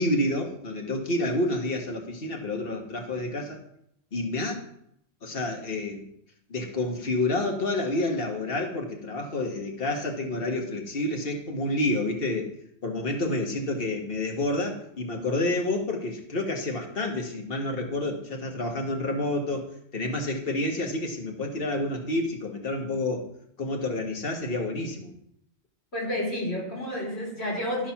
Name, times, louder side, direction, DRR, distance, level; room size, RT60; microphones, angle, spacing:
voice 1, 0.0-3.6 4.1-4.6 5.2-6.0 6.5-12.5 12.8-19.6 19.9-23.3 23.6-25.1, left 2 dB, 60° left, 1 dB, 1.6 m, -29 dB
voice 2, 25.9-27.9, left 1 dB, 75° left, -5 dB, 3.9 m, -30 dB
12.0 x 4.3 x 5.8 m, 0.72 s
omnidirectional pair, 1.1 m